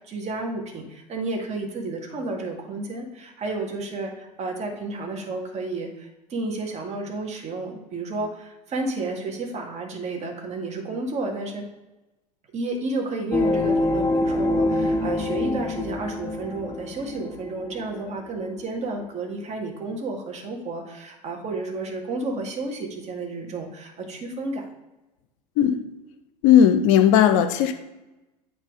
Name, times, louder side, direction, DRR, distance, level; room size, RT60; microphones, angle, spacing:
voice 1, 0.0-11.7 12.5-24.6, right 2 dB, 35° right, 2 dB, 1.9 m, -31 dB
sound 1, 13.3-18.1 18.6-18.7, left 2 dB, 15° left, 0.4 m, -25 dB
voice 2, 26.4-27.7, left 9 dB, 50° left, 9 dB, 0.6 m, -16 dB
9.0 x 3.4 x 4.8 m, 1.0 s
figure-of-eight pair, 80°, 21 cm